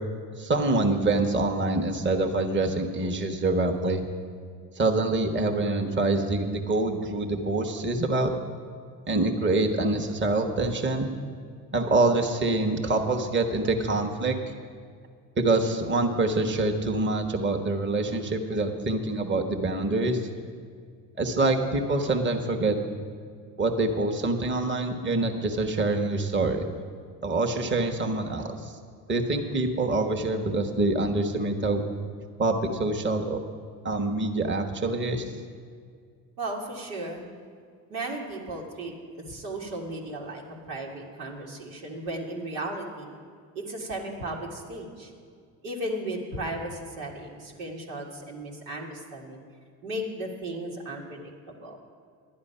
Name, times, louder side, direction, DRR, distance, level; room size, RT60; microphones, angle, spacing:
voice 1, 0.4-4.0 4.8-8.3 9.1-11.1 11.7-14.4 15.4-20.3 21.2-22.8 23.6-26.6 27.2-28.7 29.1-31.8 32.4-33.4 33.8-35.2, right 2 dB, 20° right, 3 dB, 1.2 m, -25 dB
voice 2, 36.4-37.2 37.9-43.2 43.6-45.1 45.6-49.4 49.8-51.8, right 1 dB, 90° right, -2 dB, 1.8 m, -35 dB
11.0 x 9.6 x 5.6 m, 2.1 s
hypercardioid pair, 60°, 49 cm